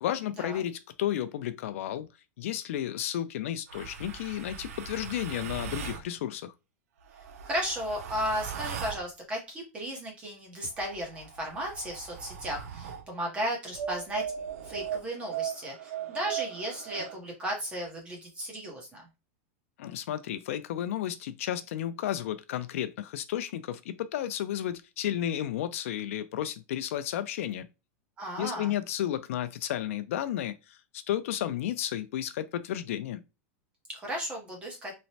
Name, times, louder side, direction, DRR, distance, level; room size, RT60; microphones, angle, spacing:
voice 1, 0.0-2.1 2.4-6.5 19.8-27.7 28.4-30.8 31.1-33.2, left 11 dB, 65° left, 0.4 m, -32 dB
sound 1, 3.7-6.1 7.0-9.1 10.7-13.1 13.7-17.2, right 8 dB, 80° right, 0.5 m, -38 dB
voice 2, 7.4-14.2 14.6-19.0 28.2-28.7 33.9-34.9, equal, 15° right, 0.7 m, -35 dB
3.1 x 2.0 x 2.7 m
supercardioid pair, 170°, 8 cm